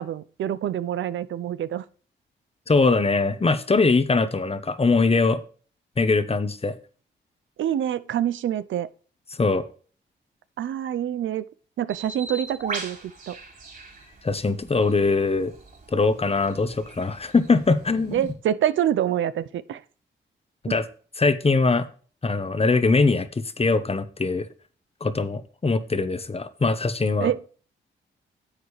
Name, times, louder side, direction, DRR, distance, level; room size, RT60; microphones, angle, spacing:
voice 1, 0.0-1.8 7.6-8.9 10.6-11.4 11.8-13.4 18.1-19.8 20.7-20.8 27.2-27.4, right 10 dB, 75° right, 0.6 m, -26 dB
voice 2, 2.7-5.4 6.0-6.7 9.4-9.6 14.2-15.5 15.9-18.3 20.6-20.9 21.2-21.9 22.2-24.5 25.0-27.3, left 3 dB, 30° left, 1.1 m, -22 dB
Bird, 11.9-18.3, right 3 dB, 45° right, 3.9 m, -40 dB
10.0 x 7.7 x 3.2 m
cardioid pair, 65°, 20 cm